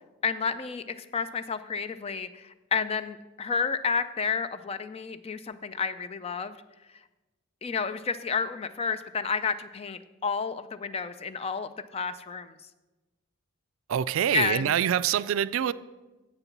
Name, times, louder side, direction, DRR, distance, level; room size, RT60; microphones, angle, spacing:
voice 1, 0.2-6.6 7.6-12.6 14.3-14.7, left 5 dB, 30° left, 0.4 m, -31 dB
voice 2, 13.9-15.7, right 9 dB, 70° right, 0.3 m, -25 dB
8.1 x 6.9 x 5.9 m
head